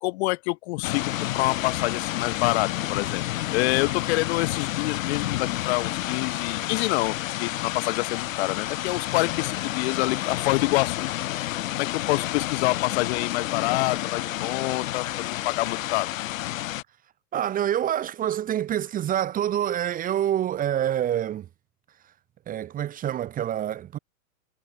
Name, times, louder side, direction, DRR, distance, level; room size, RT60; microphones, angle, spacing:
voice 1, 0.0-3.2 3.5-11.1 11.7-16.1, left 22 dB, 50° left, 2.0 m, -27 dB
sound 1, 0.8-16.8, left 14 dB, 65° left, 3.7 m, -30 dB
voice 2, 17.3-21.5 22.5-24.0, right 11 dB, 20° right, 1.1 m, -26 dB
hypercardioid pair, 140°, 43 cm